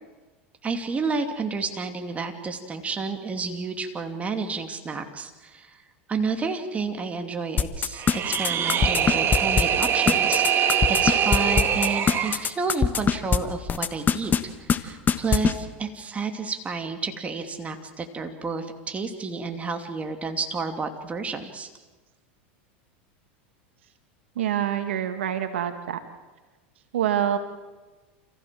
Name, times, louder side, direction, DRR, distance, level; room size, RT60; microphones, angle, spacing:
voice 1, 0.6-5.8 6.1-21.7, right 4 dB, 20° right, 5 dB, 2.8 m, -31 dB
sound 1, 7.6-13.4 13.7-14.4 14.7-14.8 15.1-15.5, left 7 dB, 30° left, 1.4 m, -21 dB
sound 2, 7.9-12.4, right 8 dB, 35° right, 1.9 m, -23 dB
voice 2, 24.4-26.0 26.9-27.4, right 10 dB, 80° right, 8 dB, 2.0 m, -26 dB
29.0 x 15.5 x 7.7 m, 1.2 s
hypercardioid pair, 100°, 6 cm